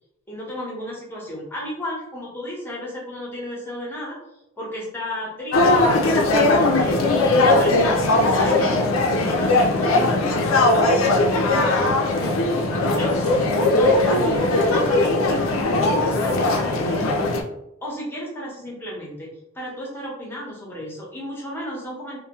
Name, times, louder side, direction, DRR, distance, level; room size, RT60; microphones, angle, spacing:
voice 1, 0.3-4.2 4.6-12.3 13.0-17.2 17.8-22.2, equal, 10° left, -4 dB, 0.8 m, -34 dB
sound 1, 5.5-17.4, left 2 dB, 80° left, 0.4 m, -19 dB
2.7 x 2.2 x 2.9 m, 0.85 s
head